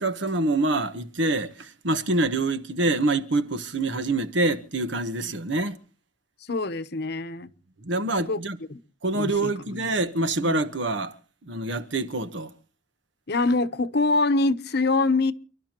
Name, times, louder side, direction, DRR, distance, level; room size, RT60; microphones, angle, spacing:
voice 1, 0.0-5.8 7.8-8.6 9.0-11.2 11.5-12.5, right 2 dB, 65° right, 1.3 m, -26 dB
voice 2, 6.4-7.5 8.3-8.4 8.7-8.8 9.1-9.9 10.4-10.6 13.3-15.3, left 3 dB, 60° left, 1.0 m, -25 dB
30.0 x 12.0 x 3.0 m
head